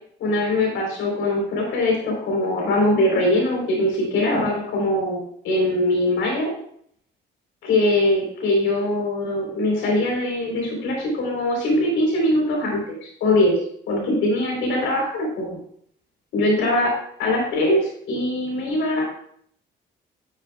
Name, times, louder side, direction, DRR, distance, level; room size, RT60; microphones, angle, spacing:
voice 1, 0.2-6.5 7.6-13.5 13.9-15.6 16.3-16.9 17.2-19.0, left 1 dB, 85° left, -1 dB, 4.3 m, -22 dB
13.0 x 8.3 x 2.5 m, 0.64 s
cardioid pair, 90°, 20 cm